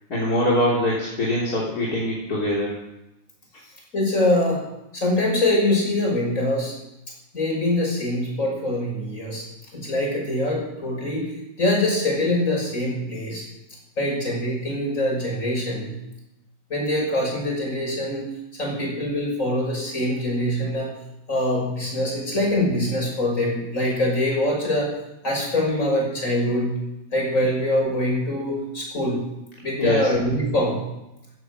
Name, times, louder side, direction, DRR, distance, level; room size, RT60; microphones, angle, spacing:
voice 1, 0.1-2.7 27.4-27.5 29.8-30.1, left 1 dB, 75° left, -6 dB, 3.8 m, -23 dB
voice 2, 3.9-4.6 4.9-6.7 7.3-9.4 9.7-11.3 11.6-13.4 14.0-16.0 16.7-18.3 18.6-20.9 21.3-24.9 25.2-26.8 27.1-29.2 29.6-30.8, left 1 dB, 55° left, -1 dB, 6.6 m, -23 dB
16.5 x 13.0 x 6.4 m, 0.93 s
omnidirectional pair, 1.7 m